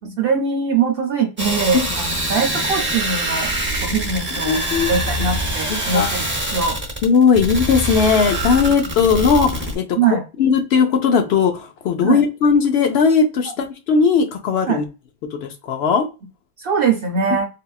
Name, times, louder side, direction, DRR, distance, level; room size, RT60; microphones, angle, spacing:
voice 1, 0.0-3.5 3.8-4.6 4.9-6.8 10.0-10.2 12.0-12.2 14.7-14.8 16.6-17.5, right 5 dB, 65° right, 2 dB, 0.7 m, -22 dB
sound 1, 1.4-9.8, right 1 dB, 15° right, 0.6 m, -24 dB
voice 2, 4.3-4.9 5.7-6.1 7.0-9.8 10.4-14.8 15.3-16.0, left 6 dB, 85° left, 5 dB, 0.9 m, -18 dB
3.4 x 2.3 x 2.3 m, 0.29 s
omnidirectional pair, 1.0 m